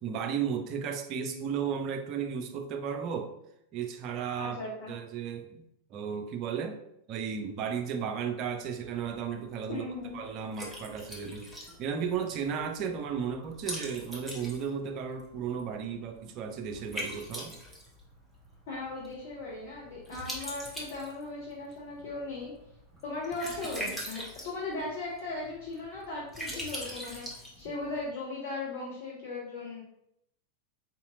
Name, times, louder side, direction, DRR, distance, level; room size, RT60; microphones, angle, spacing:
voice 1, 0.0-3.3 3.7-4.6 4.9-5.6 5.9-6.8 7.1-9.9 10.1-17.6, right 7 dB, 40° right, 5 dB, 0.5 m, -34 dB
voice 2, 4.4-4.9 9.7-10.2 18.7-22.5 23.0-29.8, left 3 dB, 55° left, -4 dB, 0.7 m, -38 dB
Liquid, 8.6-28.0, equal, ahead, 0.9 m, -43 dB
3.9 x 2.8 x 2.5 m, 0.79 s
figure-of-eight pair, 90°, 0 cm